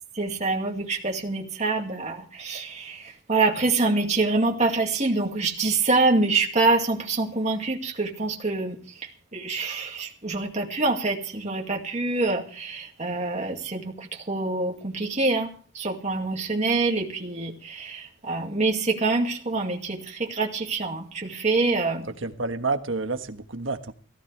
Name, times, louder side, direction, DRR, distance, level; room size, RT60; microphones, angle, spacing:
voice 1, 0.1-22.1, right 3 dB, 35° right, 2.3 m, -26 dB
voice 2, 22.2-23.9, right 3 dB, 70° right, 1.5 m, -29 dB
19.0 x 15.5 x 3.4 m
head